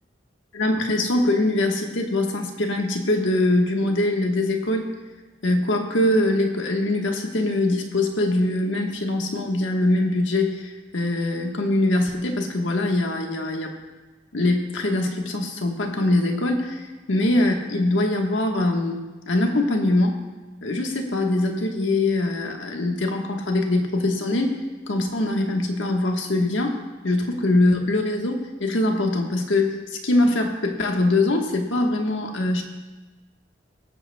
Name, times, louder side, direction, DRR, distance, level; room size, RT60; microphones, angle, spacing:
voice 1, 0.5-4.9 5.4-13.7 14.3-20.2 20.6-24.6 24.9-26.8 27.0-32.6, left 2 dB, 90° left, 2 dB, 1.3 m, -23 dB
22.5 x 7.9 x 2.3 m, 1.2 s
head